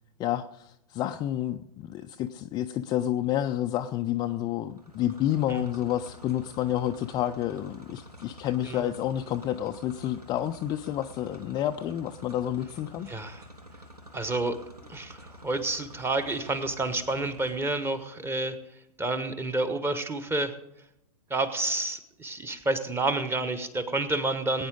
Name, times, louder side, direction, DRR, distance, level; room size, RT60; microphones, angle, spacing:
voice 1, 0.2-13.1, left 12 dB, 20° left, 6 dB, 0.4 m, -29 dB
sound 1, 4.7-18.1, equal, 90° right, 1.6 m, -49 dB
voice 2, 13.1-13.4 14.1-14.6 14.9-18.6 19.0-20.5 21.3-24.7, right 2 dB, 10° right, 11 dB, 1.2 m, -29 dB
20.0 x 9.5 x 3.9 m, 0.83 s
figure-of-eight pair, 105°, 19 cm